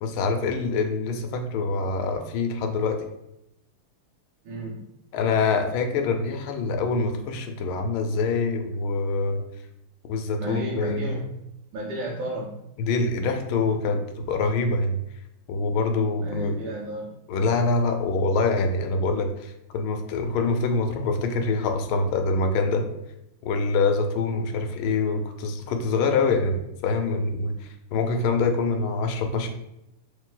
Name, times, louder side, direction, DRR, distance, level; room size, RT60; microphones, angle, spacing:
voice 1, 0.0-3.0 5.1-9.4 10.1-11.1 12.8-15.0 15.5-16.5 17.3-22.9 23.4-29.5, left 3 dB, 80° left, 5 dB, 1.4 m, -25 dB
voice 2, 4.4-4.9 10.4-11.4 11.7-12.7 16.1-17.1, right 1 dB, 90° right, -3 dB, 1.6 m, -32 dB
3.3 x 3.2 x 3.7 m, 0.83 s
omnidirectional pair, 2.3 m